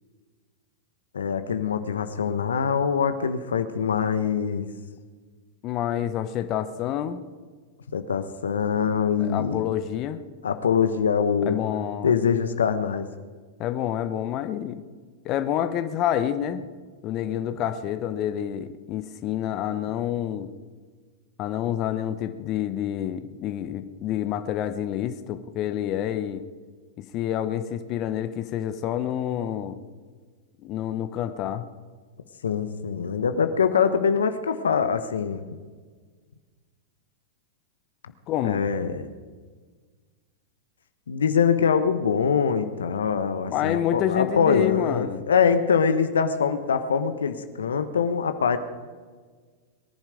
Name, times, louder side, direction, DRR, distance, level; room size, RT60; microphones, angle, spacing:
voice 1, 1.1-4.7 7.9-9.6 10.4-11.6 12.0-13.1 32.4-35.4 38.4-39.1 41.1-48.6, left 6 dB, 80° left, 10 dB, 1.1 m, -23 dB
voice 2, 5.6-7.2 9.2-10.2 11.5-12.1 13.6-14.8 15.2-16.6 17.0-20.5 21.4-26.4 27.0-29.8 30.6-31.7 38.3-38.6 43.5-45.2, left 11 dB, 40° left, 10 dB, 1.0 m, -28 dB
22.5 x 11.0 x 5.1 m, 1.5 s
hypercardioid pair, 100°, 0 cm